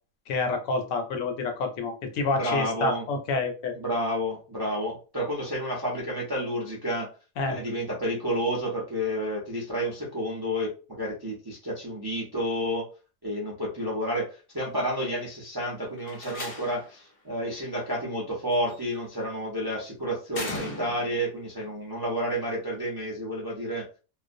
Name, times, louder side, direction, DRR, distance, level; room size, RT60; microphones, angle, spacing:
voice 1, 0.3-3.7 7.4-7.6, left 3 dB, 75° left, 5 dB, 0.9 m, -28 dB
voice 2, 2.3-3.0 3.7-7.1 7.5-12.9 13.2-23.9, equal, 35° right, -4 dB, 0.4 m, -30 dB
Slam, 16.0-17.0 18.5-18.9 20.3-21.3, left 2 dB, 40° left, 0.5 m, -37 dB
2.4 x 2.0 x 2.5 m, 0.34 s
omnidirectional pair, 1.5 m